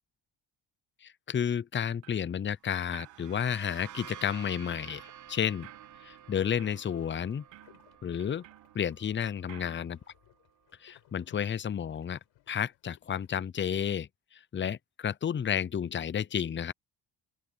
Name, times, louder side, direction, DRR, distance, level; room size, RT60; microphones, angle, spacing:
voice 1, 1.0-5.7 6.0-7.4 8.0-8.4 8.7-10.0 10.8-12.2 12.5-16.7, left 8 dB, 25° left, 0.6 m, -31 dB
sound 1, 2.0-2.3 2.7-3.6 3.8-9.2 9.5-9.8, right 16 dB, 85° right, 2.4 m, -55 dB
sound 2, 2.7-10.3, right 11 dB, 45° right, 0.7 m, -51 dB
sound 3, 3.3-13.3, left 16 dB, 85° left, 4.7 m, -64 dB
open air
cardioid pair, 90°, 43 cm